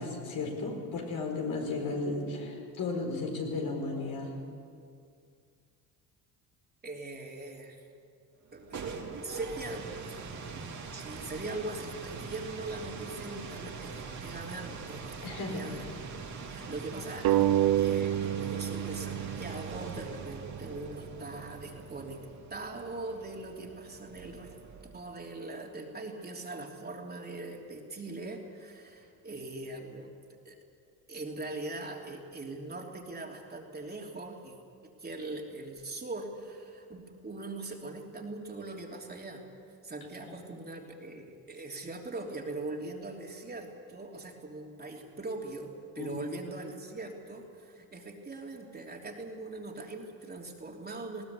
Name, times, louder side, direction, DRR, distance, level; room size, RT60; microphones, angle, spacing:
voice 1, 0.0-4.4 15.2-15.6 40.2-40.4 46.0-46.1, left 3 dB, 65° left, 1 dB, 5.0 m, -34 dB
voice 2, 6.8-7.8 8.5-10.2 10.9-16.2 16.5-17.5 17.8-22.2 22.5-24.6 24.9-30.1 30.4-30.6 31.1-34.6 35.0-39.4 39.8-51.3, right 2 dB, 25° right, 0 dB, 3.2 m, -41 dB
sound 1, 8.4-25.1, right 4 dB, 45° right, 2.8 m, -43 dB
sound 2, 17.2-20.4, right 12 dB, 75° right, 0.9 m, -28 dB
20.5 x 17.5 x 8.5 m, 2.3 s
cardioid pair, 100°, 38 cm